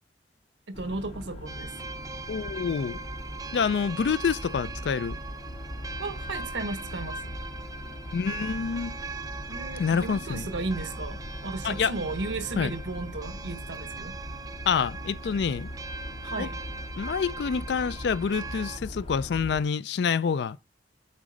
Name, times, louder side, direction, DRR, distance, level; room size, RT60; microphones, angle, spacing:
sound 1, 0.7-19.6, equal, 35° left, 0.7 m, -40 dB
voice 1, 0.7-1.7 6.0-7.3 9.5-14.1 16.2-16.6, right 3 dB, 85° right, 1.1 m, -35 dB
sound 2, 1.5-18.8, right 4 dB, 20° right, 0.5 m, -41 dB
voice 2, 2.3-3.0 3.5-5.2 8.1-9.0 9.8-10.5 11.6-11.9 12.6-12.7 14.7-15.7 16.4-16.5 17.0-20.6, left 6 dB, 65° left, 0.4 m, -27 dB
sound 3, 8.1-13.6, equal, 80° left, 2.5 m, -48 dB
7.3 x 4.2 x 5.0 m
head